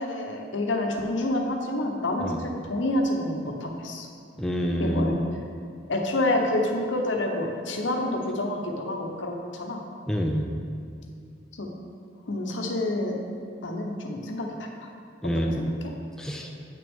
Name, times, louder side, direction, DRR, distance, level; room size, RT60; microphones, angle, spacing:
voice 1, 0.0-4.1 4.8-5.2 5.9-9.8 11.6-11.7 12.3-13.2 13.6-14.9 15.2-15.9, left 1 dB, 75° left, 2 dB, 0.9 m, -28 dB
voice 2, 4.4-5.2 10.1-10.4 15.2-15.7 16.2-16.5, equal, 5° left, 1 dB, 0.4 m, -27 dB
8.6 x 6.0 x 3.6 m, 2.3 s
head